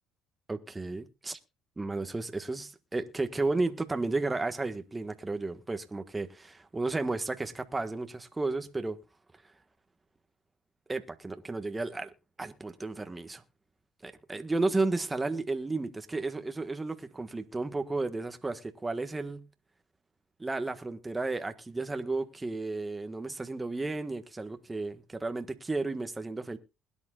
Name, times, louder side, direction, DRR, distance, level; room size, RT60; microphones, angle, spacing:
voice 1, 0.5-1.4 1.8-9.0 10.9-13.4 14.0-19.5 20.4-26.6, right 3 dB, 15° right, 1.5 m, -33 dB
21.5 x 11.0 x 2.5 m
supercardioid pair, 85°, 0 cm